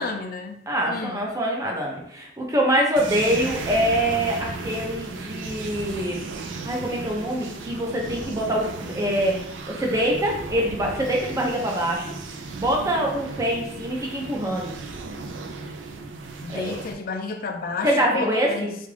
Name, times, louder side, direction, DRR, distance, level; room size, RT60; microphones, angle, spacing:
voice 1, 0.0-1.2 16.4-18.7, left 4 dB, 55° left, 5 dB, 0.4 m, -31 dB
voice 2, 0.7-6.2 6.6-14.8 16.5-16.8 17.8-18.7, equal, 20° right, -1 dB, 0.6 m, -25 dB
sound 1, 3.0-16.9, right 3 dB, 85° right, 0.4 m, -35 dB
3.5 x 2.4 x 3.3 m, 0.73 s
head